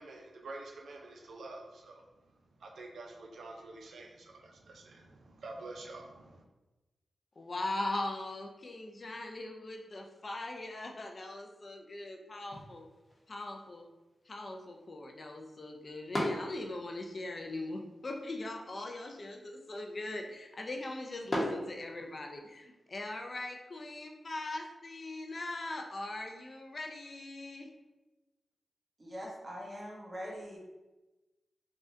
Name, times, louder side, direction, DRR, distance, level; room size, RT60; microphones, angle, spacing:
voice 1, 0.0-6.4, right 2 dB, 85° right, 1 dB, 0.4 m, -48 dB
voice 2, 7.4-12.8 13.3-13.9 14.3-27.7, left 2 dB, 45° left, 2 dB, 0.4 m, -40 dB
sound 1, 12.4-22.4, left 1 dB, 25° left, 0.8 m, -42 dB
voice 3, 29.0-30.6, equal, 35° right, -4 dB, 1.0 m, -42 dB
3.6 x 2.2 x 2.5 m, 1.1 s
wide cardioid pair, 100°, 0 cm